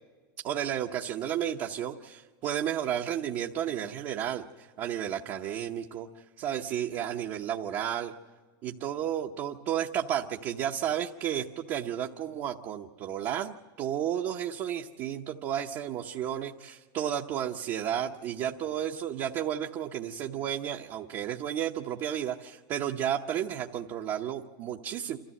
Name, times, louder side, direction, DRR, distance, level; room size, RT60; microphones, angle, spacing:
voice 1, 0.4-6.1 6.4-8.1 8.6-25.2, right 10 dB, 40° right, 2 dB, 0.8 m, -32 dB
27.0 x 14.0 x 7.7 m, 1.5 s
supercardioid pair, 145°, 10 cm